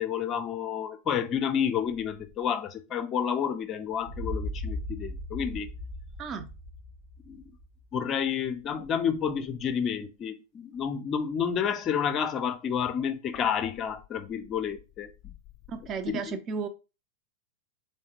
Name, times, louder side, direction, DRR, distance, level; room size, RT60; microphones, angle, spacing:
voice 1, 0.0-5.7 7.3-7.4 7.9-15.3 16.1-16.2, left 8 dB, 30° left, 0.5 m, -30 dB
sound 1, 4.0-7.9, left 1 dB, 70° right, 1.3 m, -37 dB
voice 2, 6.2-6.5 15.7-16.7, right 5 dB, 30° right, 0.5 m, -34 dB
3.4 x 3.2 x 2.9 m
figure-of-eight pair, 90°, 0 cm